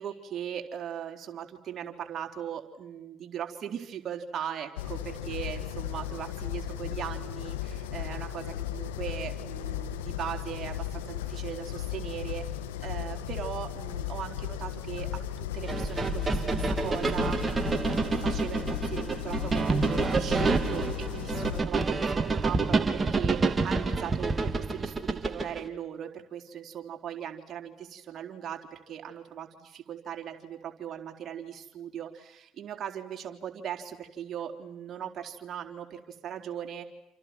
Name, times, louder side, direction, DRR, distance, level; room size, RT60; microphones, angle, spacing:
voice 1, 0.0-12.4 12.8-36.9, right 9 dB, 45° right, 3 dB, 4.1 m, -39 dB
sound 1, 4.8-21.6, left 11 dB, 80° left, 1.8 m, -36 dB
sound 2, 15.7-25.6, right 3 dB, 25° right, 2.9 m, -28 dB
29.0 x 28.0 x 6.2 m, 0.88 s
hypercardioid pair, 60°, 0 cm